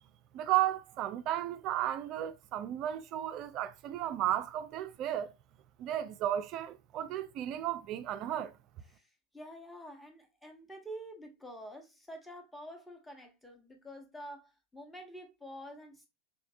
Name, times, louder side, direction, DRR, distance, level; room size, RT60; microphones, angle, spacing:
voice 1, 0.3-5.3 5.8-8.5, right 12 dB, 35° right, 0.3 m, -34 dB
voice 2, 9.3-16.1, equal, 5° left, 1.1 m, -48 dB
4.7 x 3.1 x 2.6 m
figure-of-eight pair, 90°, 0 cm